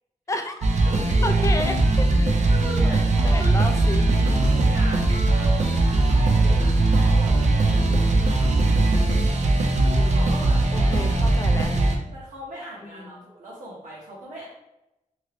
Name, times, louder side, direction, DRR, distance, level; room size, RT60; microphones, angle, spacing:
voice 1, 0.3-0.6 1.2-2.4 2.9-4.5 7.6-8.2 10.7-11.7 12.8-13.3, left 2 dB, 25° left, 6 dB, 0.3 m, -32 dB
sound 1, 0.6-11.9, right 2 dB, 60° right, 0.5 m, -20 dB
voice 2, 0.8-1.3 2.5-3.6 4.4-8.6 9.8-11.0 12.1-14.5, right 1 dB, 90° right, -7 dB, 1.2 m, -38 dB
2.9 x 2.9 x 3.0 m, 0.89 s
wide cardioid pair, 115°, 13 cm